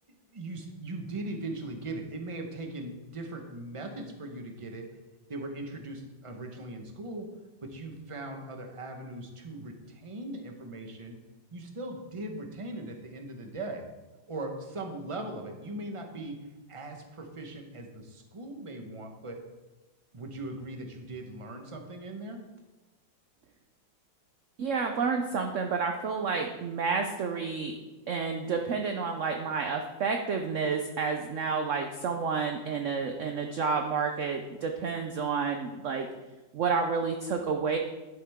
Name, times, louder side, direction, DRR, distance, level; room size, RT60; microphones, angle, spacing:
voice 1, 0.3-4.9 5.3-7.3 7.6-11.2 11.5-13.9 14.3-16.4 16.7-19.4 20.1-22.4, right 2 dB, 20° right, 3 dB, 0.9 m, -39 dB
voice 2, 24.6-27.8 28.1-36.1 36.5-37.8, right 5 dB, 65° right, 4 dB, 0.7 m, -30 dB
11.0 x 8.5 x 3.6 m, 1.1 s
omnidirectional pair, 2.1 m